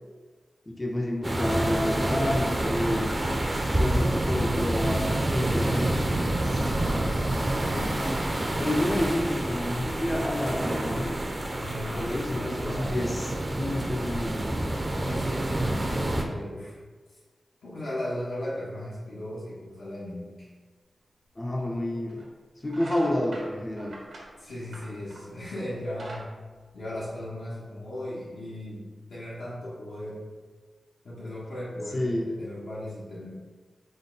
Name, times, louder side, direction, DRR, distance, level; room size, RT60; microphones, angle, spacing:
voice 1, 0.7-3.1 3.6-6.0 6.3-6.7 7.6-8.3 8.6-11.1 12.0-14.6 21.4-22.2 22.6-24.0 31.9-32.3, left 1 dB, 25° left, 1 dB, 0.4 m, -29 dB
sound 1, 1.2-16.2, right 1 dB, 30° right, 0.5 m, -28 dB
voice 2, 11.6-13.2 15.0-16.8 17.1-17.2 17.6-20.5 24.4-26.3 26.7-30.3 31.0-33.3, left 1 dB, 85° left, -8 dB, 0.9 m, -37 dB
sound 2, 21.3-21.4 22.1-22.3 22.6-25.4 25.8-27.4, right 2 dB, 80° right, 1.3 m, -44 dB
5.2 x 2.2 x 3.8 m, 1.4 s
cardioid pair, 70°, 0 cm